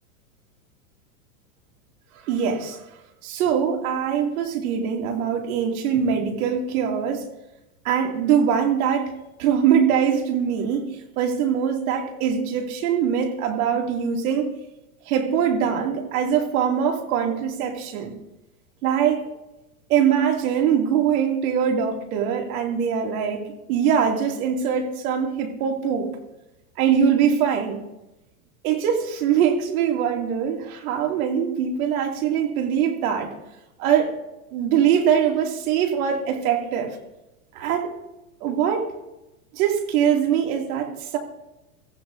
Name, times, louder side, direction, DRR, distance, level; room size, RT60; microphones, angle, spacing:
voice 1, 2.3-2.8 3.2-7.3 7.8-14.5 15.1-18.1 18.8-19.2 19.9-23.4 23.7-26.1 26.8-27.8 28.6-33.3 33.8-34.1 34.5-37.0 37.5-37.9 38.4-38.9 39.5-41.2, right 8 dB, 60° right, 2 dB, 2.7 m, -22 dB
23.0 x 15.0 x 2.7 m, 0.97 s
hypercardioid pair, 110°, 47 cm